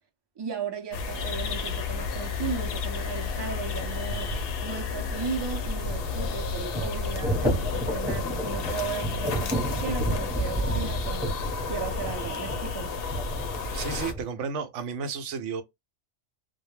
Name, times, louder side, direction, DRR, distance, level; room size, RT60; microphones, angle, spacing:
voice 1, 0.4-4.3 4.6-11.4 11.7-12.9, right 6 dB, 35° right, 0.4 m, -36 dB
sound 1, 0.9-14.1, left 4 dB, 60° left, 0.7 m, -31 dB
sound 2, 6.0-14.2, right 1 dB, 5° right, 0.8 m, -32 dB
voice 2, 13.7-15.6, right 6 dB, 75° right, 0.9 m, -32 dB
2.2 x 2.1 x 3.1 m
omnidirectional pair, 1.3 m